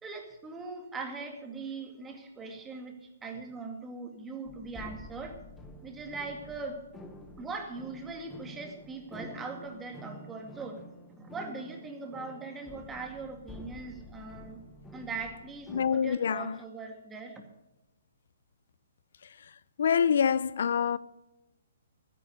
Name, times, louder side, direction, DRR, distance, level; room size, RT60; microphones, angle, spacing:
voice 1, 0.0-5.4 5.8-6.8 7.4-14.6 14.9-17.4, right 4 dB, 15° right, 2.2 m, -41 dB
sound 1, 4.5-15.9, left 1 dB, 10° left, 1.3 m, -49 dB
voice 2, 15.7-16.6 19.8-21.0, left 7 dB, 65° left, 0.4 m, -26 dB
12.5 x 10.0 x 6.5 m
hypercardioid pair, 140°, 0 cm